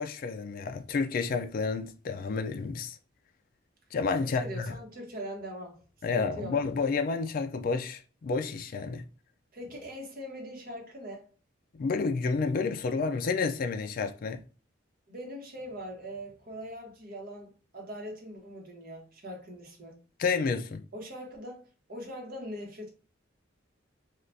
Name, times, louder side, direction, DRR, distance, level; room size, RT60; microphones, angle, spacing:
voice 1, 0.0-3.0 3.9-4.7 6.0-9.0 11.7-14.4 20.2-20.9, left 4 dB, 45° left, 0.3 m, -30 dB
voice 2, 4.2-6.6 9.5-11.3 15.1-20.0 20.9-22.9, equal, 45° right, 1.0 m, -42 dB
3.3 x 2.4 x 2.6 m
head